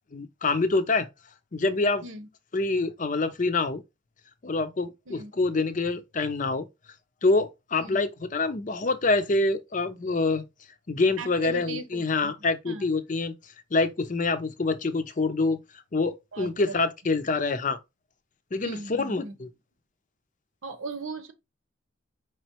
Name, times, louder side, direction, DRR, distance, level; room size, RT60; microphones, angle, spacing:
voice 1, 0.1-1.1 1.5-2.0 2.5-3.8 4.4-6.6 7.2-10.4 10.9-13.3 13.7-15.6 15.9-17.8 18.5-19.5, left 3 dB, 40° left, 0.5 m, -26 dB
voice 2, 11.2-12.3 12.6-12.8 16.3-16.8 18.6-19.4 20.6-21.3, right 3 dB, 90° right, 0.9 m, -38 dB
5.0 x 3.0 x 2.9 m
head